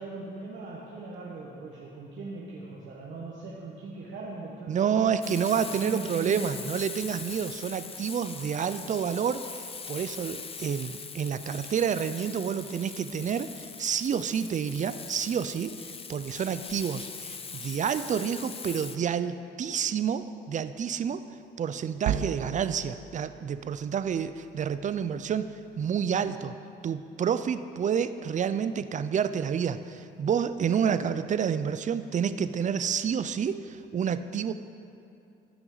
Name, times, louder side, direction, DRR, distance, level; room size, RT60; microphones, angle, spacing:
voice 1, 0.0-6.6, right 3 dB, 75° right, -6 dB, 1.5 m, -40 dB
voice 2, 4.7-15.8 16.1-21.3 21.6-26.5 26.8-34.5, right 7 dB, 40° right, 12 dB, 0.4 m, -29 dB
Frying (food), 5.2-19.0, left 5 dB, 30° left, 0.6 m, -41 dB
sound 1, 22.0-26.4, right 9 dB, 90° right, 0.5 m, -38 dB
14.5 x 6.1 x 4.0 m, 2.7 s
cardioid pair, 90°, 20 cm